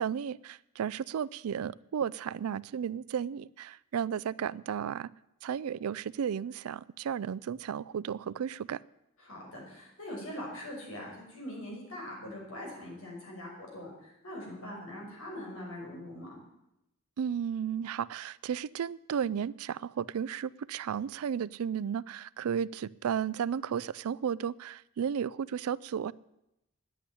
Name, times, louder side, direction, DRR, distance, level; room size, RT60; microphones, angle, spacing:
voice 1, 0.0-5.1 5.4-8.8 17.2-26.1, right 8 dB, 80° right, 21 dB, 0.4 m, -34 dB
voice 2, 9.2-16.3, left 1 dB, 65° left, -2 dB, 5.7 m, -42 dB
10.0 x 8.6 x 9.9 m, 0.88 s
head